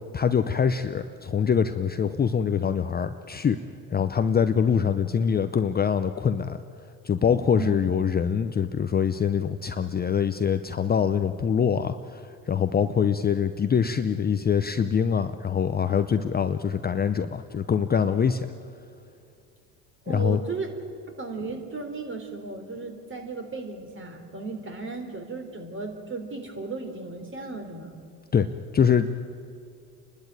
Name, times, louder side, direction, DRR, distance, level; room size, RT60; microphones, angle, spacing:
voice 1, 0.1-3.6 3.9-6.6 7.0-18.5 20.1-20.4 28.3-29.1, left 7 dB, 20° left, 9 dB, 0.7 m, -24 dB
voice 2, 7.5-7.9 20.1-20.8 21.2-28.0, right 3 dB, 30° right, 5 dB, 3.7 m, -35 dB
29.5 x 12.0 x 9.0 m, 2.3 s
hypercardioid pair, 75°, 42 cm